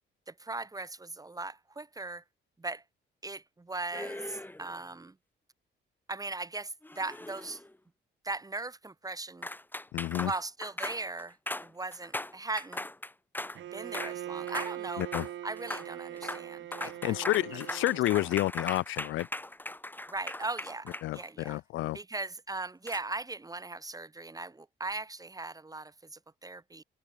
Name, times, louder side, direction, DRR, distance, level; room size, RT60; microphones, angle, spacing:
voice 1, 0.3-2.2 2.6-2.8 3.2-5.2 6.1-7.6 8.2-9.5 10.2-11.4 11.6-12.9 13.7-15.1 15.4-17.2 17.8-18.3 20.1-21.6 21.9-26.8, right 3 dB, 20° right, 1.9 m, -39 dB
sound 1, 3.9-4.8 6.8-7.8 9.4-13.6 13.9-14.2 14.5-14.8 15.0-15.3 15.6-15.9 16.2-16.4 16.7-21.5 22.9-23.0, left 1 dB, 10° left, 4.0 m, -39 dB
voice 2, 9.9-10.3 15.0-15.3 17.0-19.3 21.0-22.0, left 16 dB, 80° left, 0.5 m, -30 dB
Bowed string instrument, 13.5-18.3, right 12 dB, 75° right, 4.2 m, -41 dB
open air
cardioid pair, 90°, 20 cm